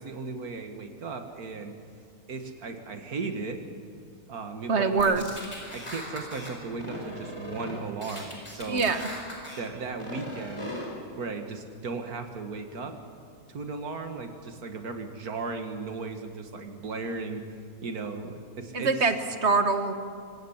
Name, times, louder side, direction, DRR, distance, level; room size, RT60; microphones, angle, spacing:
voice 1, 0.0-1.7 2.3-3.6 4.3-5.3 5.7-8.9 9.6-10.7 11.2-13.0 13.5-17.4 17.8-18.9, right 4 dB, 90° right, 6 dB, 2.2 m, -36 dB
voice 2, 4.7-5.2 8.7-9.1 18.7-19.9, right 4 dB, 50° right, 9 dB, 1.5 m, -24 dB
sound 1, 5.0-6.5 6.8-7.7 8.0-9.6 10.0-10.8, left 1 dB, 20° left, 4.8 m, -39 dB
25.0 x 18.0 x 7.3 m, 2.3 s
omnidirectional pair, 1.5 m